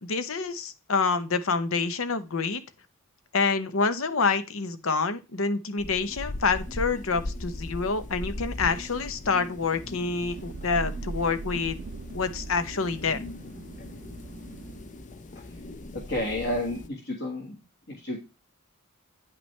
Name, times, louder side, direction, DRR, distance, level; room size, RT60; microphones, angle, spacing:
voice 1, 0.0-2.6 3.3-11.8 12.1-13.2, left 4 dB, 70° left, 11 dB, 0.9 m, -27 dB
sound 1, 5.8-16.9, left 2 dB, 35° left, 0.6 m, -39 dB
Thunder / Rain, 9.4-15.1, right 3 dB, 50° right, 0.5 m, -40 dB
voice 2, 15.9-17.6 17.9-18.2, left 1 dB, 50° left, -1 dB, 1.8 m, -31 dB
9.5 x 5.8 x 3.3 m, 0.29 s
head